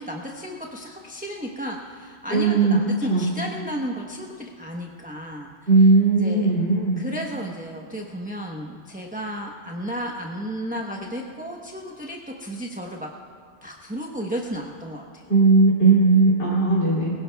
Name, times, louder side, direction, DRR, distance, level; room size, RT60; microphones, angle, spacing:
voice 1, 0.0-5.5 6.2-6.5 7.0-13.1 13.6-15.3, equal, 10° right, -1 dB, 0.9 m, -33 dB
voice 2, 2.3-2.8 3.1-3.3 5.7-7.0 15.3-17.1, right 3 dB, 75° left, -9 dB, 3.0 m, -17 dB
24.0 x 16.5 x 2.3 m, 2.1 s
omnidirectional pair, 1.2 m